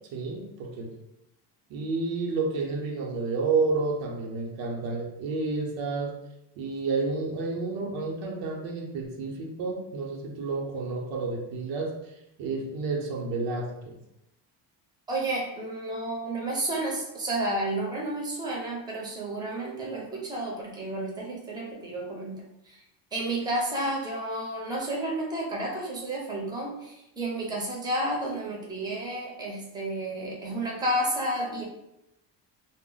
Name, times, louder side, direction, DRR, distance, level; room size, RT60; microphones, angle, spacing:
voice 1, 0.1-0.9 1.7-6.2 6.6-11.9 12.4-14.0, right 3 dB, 85° right, 0 dB, 0.7 m, -30 dB
voice 2, 15.1-22.8 23.1-31.6, right 1 dB, 10° right, -3 dB, 0.6 m, -31 dB
2.1 x 2.0 x 3.7 m, 0.86 s
cardioid pair, 130°, 45 cm